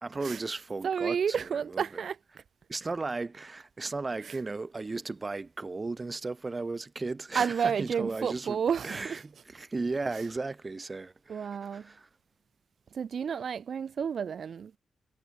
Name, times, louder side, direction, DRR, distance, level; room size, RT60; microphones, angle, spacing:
voice 1, 0.0-1.8 2.7-8.6 8.8-12.1, right 3 dB, 25° right, 1.2 m, -35 dB
voice 2, 0.8-2.2 4.2-4.4 7.3-9.2 11.3-11.9 12.9-14.8, right 7 dB, 60° right, 0.8 m, -31 dB
wide cardioid pair, 140°, 0 cm